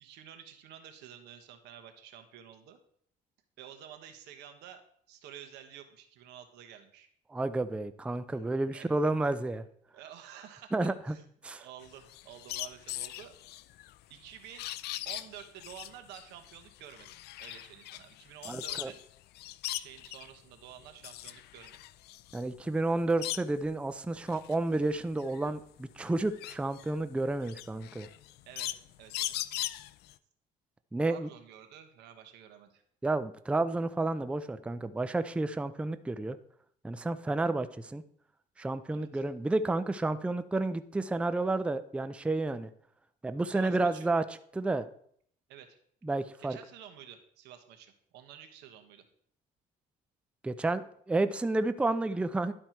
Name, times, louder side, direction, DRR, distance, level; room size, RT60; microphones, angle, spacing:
voice 1, 0.0-2.8 3.6-7.1 8.3-8.5 8.7-8.9 9.9-10.7 11.1-11.3 11.6-13.3 14.1-14.7 15.0-17.1 17.4-19.0 19.7-21.8 28.5-29.5 31.0-32.8 38.9-39.2 43.4-44.1 45.5-45.8 46.4-49.0, right 9 dB, 85° right, 7 dB, 1.2 m, -50 dB
voice 2, 7.3-9.6 10.7-11.1 11.4-11.7 18.5-18.9 22.3-28.1 30.9-31.3 33.0-36.4 36.8-38.0 38.6-42.7 43.2-44.2 44.5-44.9 46.0-46.6 50.4-52.5, right 2 dB, 5° right, 12 dB, 0.4 m, -31 dB
sound 1, 11.8-19.0 19.3-20.3 20.8-23.7 24.2-30.1, left 15 dB, 75° left, 0.4 m, -40 dB
11.5 x 4.4 x 4.5 m, 0.64 s
cardioid pair, 110°, 17 cm